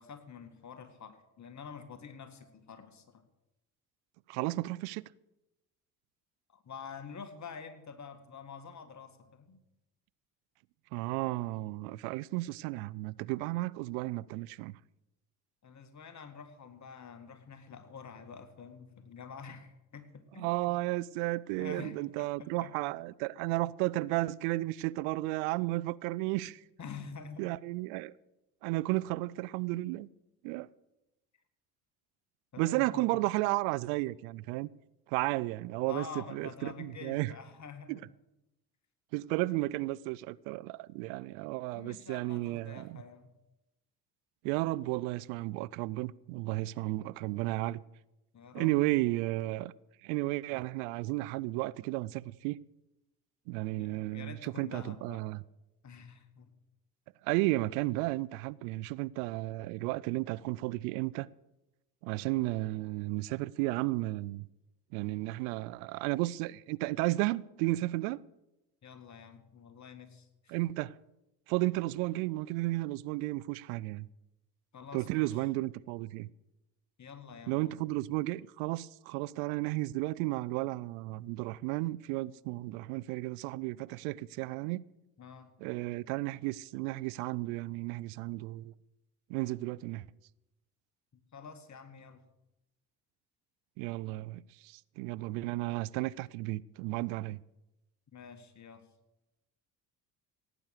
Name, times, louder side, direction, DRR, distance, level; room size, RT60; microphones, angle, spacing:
voice 1, 0.0-3.2 6.5-9.6 15.6-20.8 21.6-22.7 26.8-27.4 32.5-33.2 35.8-38.0 41.7-43.3 48.3-48.8 53.8-55.2 55.8-56.5 68.8-70.6 74.7-75.4 77.0-77.8 85.2-85.5 91.1-92.3 98.1-98.8, left 6 dB, 35° left, 2.0 m, -47 dB
voice 2, 4.3-5.0 10.9-14.8 20.4-26.6 27.4-28.1 28.6-30.1 30.4-30.7 32.6-34.7 35.1-36.0 36.3-37.3 37.9-38.0 39.1-43.0 44.4-47.8 48.5-49.7 50.0-52.6 53.5-55.4 57.2-61.3 62.0-64.5 64.9-68.2 70.5-71.0 71.5-74.1 74.9-76.3 77.5-84.8 85.6-88.7 89.3-90.1 93.8-97.4, right 19 dB, 70° right, 0.6 m, -33 dB
17.0 x 9.0 x 6.6 m
hypercardioid pair, 55°, 46 cm